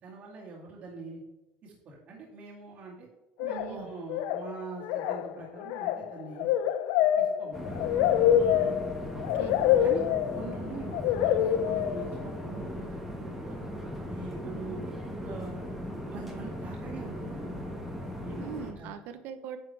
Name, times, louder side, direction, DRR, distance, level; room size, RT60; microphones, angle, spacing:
voice 1, 0.0-1.2 1.6-3.1 3.5-6.5 7.2-7.8 8.4-8.8 9.8-10.0 10.3-11.0 11.4-13.6 14.1-15.6 16.0-17.6 18.2-18.4 18.8-18.9, right 3 dB, 45° right, -7 dB, 2.3 m, -43 dB
sound 1, 3.4-3.8 4.1-4.5 4.8-12.4, left 10 dB, 75° left, 0.5 m, -26 dB
voice 2, 3.4-3.9 9.4-9.6 18.4-19.6, right 8 dB, 65° right, 9 dB, 0.9 m, -41 dB
sound 2, 7.5-18.7, equal, 5° right, 1.5 m, -38 dB
9.8 x 6.7 x 3.4 m, 0.97 s
cardioid pair, 150°, 3 cm